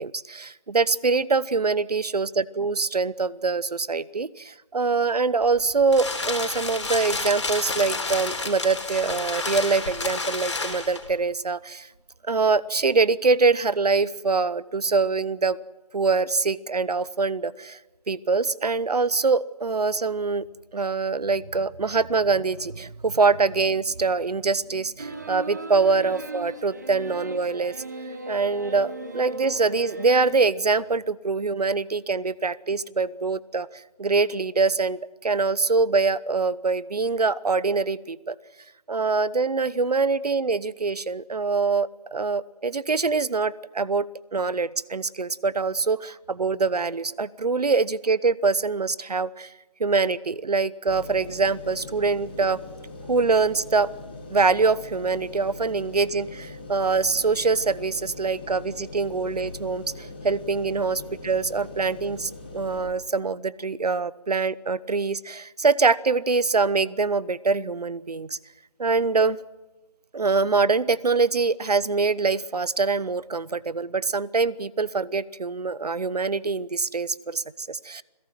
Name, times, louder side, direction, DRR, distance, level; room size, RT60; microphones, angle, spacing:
voice 1, 0.0-11.9 12.2-15.6 15.9-17.8 18.1-20.5 20.7-27.8 28.3-38.3 38.9-44.1 44.3-49.5 49.8-52.6 53.1-53.9 54.3-68.4 68.8-69.4 70.1-78.0, right 4 dB, 70° right, 20 dB, 0.9 m, -24 dB
sound 1, 5.4-11.1, left 3 dB, 45° left, 3.6 m, -30 dB
sound 2, 25.0-30.4, right 2 dB, 25° right, 1.2 m, -37 dB
sound 3, 50.9-62.8, left 2 dB, 15° left, 2.0 m, -41 dB
27.0 x 17.0 x 7.7 m, 1.1 s
figure-of-eight pair, 175°, 21 cm